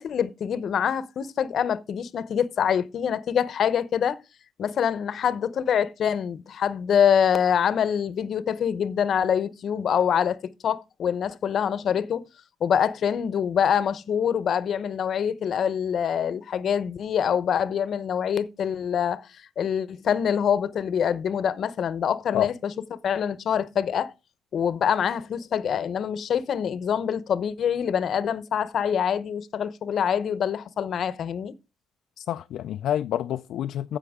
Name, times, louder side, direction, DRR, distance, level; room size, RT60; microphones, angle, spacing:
voice 1, 0.0-4.2 4.6-10.4 10.6-12.3 12.6-24.1 24.5-31.5, left 8 dB, 60° left, 0.8 m, -25 dB
voice 2, 32.2-34.0, left 11 dB, 80° left, 0.4 m, -28 dB
15.5 x 5.7 x 3.6 m
cardioid pair, 90°, 0 cm